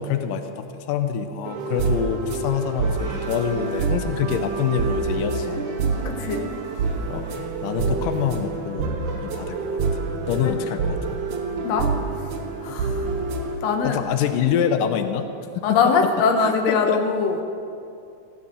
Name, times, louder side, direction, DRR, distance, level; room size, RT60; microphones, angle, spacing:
voice 1, 0.0-5.7 7.1-9.8 10.3-11.0 13.8-15.3 15.6-15.9 16.4-17.0, left 8 dB, 90° left, 7 dB, 2.5 m, -26 dB
sound 1, 1.4-13.5, right 4 dB, 75° right, 2.6 m, -27 dB
sound 2, 1.6-15.1, right 1 dB, 30° right, 3.2 m, -47 dB
voice 2, 6.0-6.5 10.4-10.6 11.6-11.9 12.2-12.3 12.6-13.1 13.6-14.0 15.6-17.4, left 5 dB, 60° left, 4 dB, 2.3 m, -22 dB
15.5 x 10.5 x 7.9 m, 2.6 s
omnidirectional pair, 3.7 m